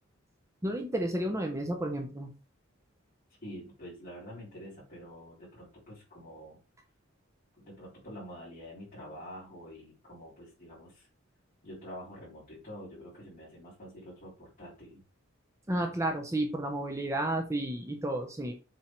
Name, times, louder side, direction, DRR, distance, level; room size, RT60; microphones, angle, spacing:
voice 1, 0.6-2.3 15.7-18.5, right 1 dB, 15° right, 3 dB, 0.9 m, -32 dB
voice 2, 3.4-6.6 7.6-11.1 11.6-15.0, equal, 40° left, -8 dB, 3.5 m, -47 dB
7.3 x 3.6 x 4.6 m, 0.33 s
head